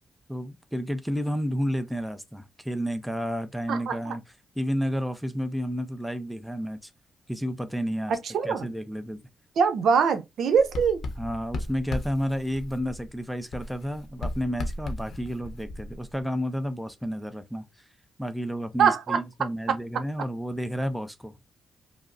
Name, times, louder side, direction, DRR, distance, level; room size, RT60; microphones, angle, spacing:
voice 1, 0.3-4.2 4.6-6.9 7.3-8.2 8.4-9.2 11.2-17.6 18.2-21.4, equal, ahead, 0.5 m, -31 dB
voice 2, 3.7-4.1 8.1-8.7 9.6-11.0 18.8-19.2, right 6 dB, 75° right, 0.7 m, -23 dB
Writing, 10.5-13.2 13.5-16.2, left 2 dB, 65° left, 0.7 m, -36 dB
5.0 x 2.0 x 2.5 m
cardioid pair, 110°, 0 cm